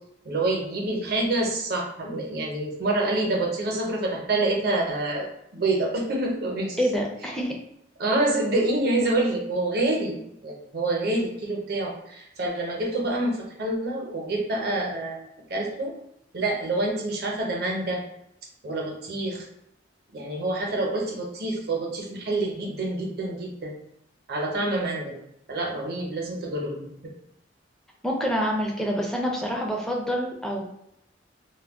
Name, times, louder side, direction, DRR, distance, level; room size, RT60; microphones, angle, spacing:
voice 1, 0.2-5.3 5.5-6.8 8.0-15.2 15.5-15.9 16.3-18.0 18.6-19.4 20.1-23.8 24.3-25.2 25.5-27.1, right 2 dB, 55° right, -1 dB, 0.7 m, -27 dB
voice 2, 6.8-7.6 28.0-30.6, equal, 5° left, -1 dB, 0.4 m, -27 dB
2.2 x 2.1 x 3.4 m, 0.78 s
head